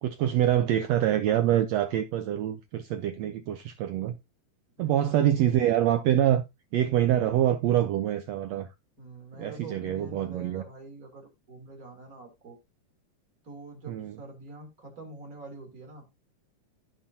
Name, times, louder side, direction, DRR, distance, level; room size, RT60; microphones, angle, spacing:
voice 1, 0.0-4.1 4.8-6.4 6.7-8.7 9.4-10.6 13.9-14.1, right 11 dB, 80° right, 1.5 m, -25 dB
voice 2, 4.8-5.4 9.0-12.6 13.4-16.0, right 2 dB, 25° right, 3.4 m, -45 dB
16.0 x 5.9 x 2.8 m
omnidirectional pair, 3.7 m